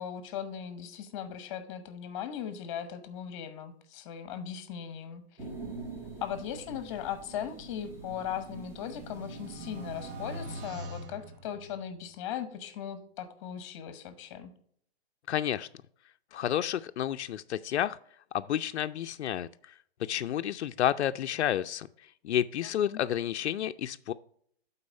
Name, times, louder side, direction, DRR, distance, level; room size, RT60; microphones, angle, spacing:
voice 1, 0.0-5.2 6.2-14.5 22.6-23.0, left 9 dB, 30° left, 11 dB, 0.9 m, -38 dB
sound 1, 5.4-10.7, right 3 dB, 10° right, 0.6 m, -45 dB
sound 2, 8.4-12.1, right 1 dB, 55° right, 0.9 m, -43 dB
voice 2, 15.3-15.7 16.3-18.0 18.3-19.7 20.0-21.9 22.2-24.1, left 11 dB, 80° left, 10 dB, 0.5 m, -30 dB
8.7 x 4.1 x 5.2 m, 0.63 s
hypercardioid pair, 155°, 33 cm